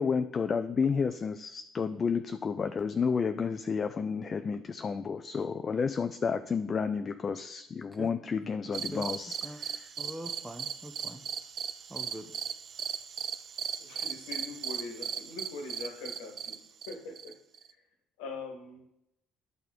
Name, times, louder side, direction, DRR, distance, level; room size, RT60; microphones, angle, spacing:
voice 1, 0.0-9.9, left 5 dB, 35° left, 9 dB, 0.4 m, -31 dB
sound 1, 8.7-17.7, right 7 dB, 45° right, 0.4 m, -38 dB
voice 2, 10.0-11.2 11.9-12.3, equal, 5° right, 6 dB, 0.9 m, -42 dB
voice 3, 13.8-17.3 17.7-17.8 18.2-18.9, left 3 dB, 65° left, 4 dB, 1.3 m, -43 dB
11.0 x 4.0 x 4.3 m, 0.80 s
figure-of-eight pair, 50°, 0 cm